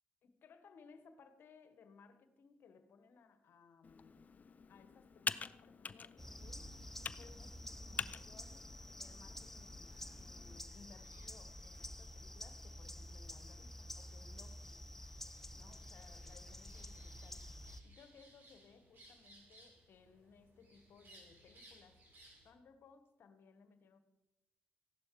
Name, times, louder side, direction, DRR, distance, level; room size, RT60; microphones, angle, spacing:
voice 1, 0.2-4.3 4.7-8.7 9.0-14.8 15.5-22.0 22.4-24.0, left 5 dB, 60° left, 10 dB, 1.4 m, -63 dB
Computer keyboard, 3.8-10.6, left 5 dB, 40° left, 0.6 m, -47 dB
sound 1, 6.2-17.8, left 1 dB, 10° left, 1.1 m, -50 dB
sound 2, 9.9-22.5, right 1 dB, 55° right, 5.6 m, -65 dB
15.5 x 11.5 x 4.8 m, 1.0 s
hypercardioid pair, 45°, 4 cm